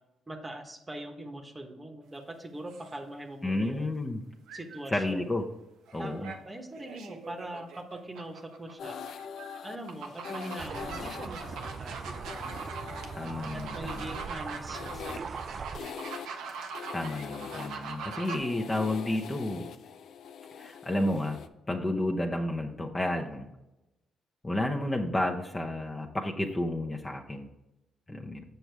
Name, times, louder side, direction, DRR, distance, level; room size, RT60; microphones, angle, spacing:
voice 1, 0.3-3.9 4.5-5.2 6.0-9.0 9.6-12.3 13.5-15.3 15.8-15.9 28.1-28.4, right 1 dB, 20° right, 4 dB, 1.1 m, -42 dB
sound 1, 2.7-3.0 4.5-5.0 5.9-6.4 6.7-9.6 9.9-18.4, right 5 dB, 90° right, 0.9 m, -42 dB
voice 2, 3.4-4.2 4.9-5.4 5.9-6.3 13.2-14.1 16.9-19.7 20.6-21.4 21.7-23.5 24.4-27.5 28.1-28.4, left 1 dB, 20° left, 1 dB, 0.9 m, -31 dB
sound 2, 8.8-21.5, left 7 dB, 65° left, 0.5 m, -44 dB
sound 3, 10.6-15.8, right 5 dB, 45° right, 0.4 m, -41 dB
7.9 x 6.1 x 3.4 m, 0.94 s
cardioid pair, 90°, 0 cm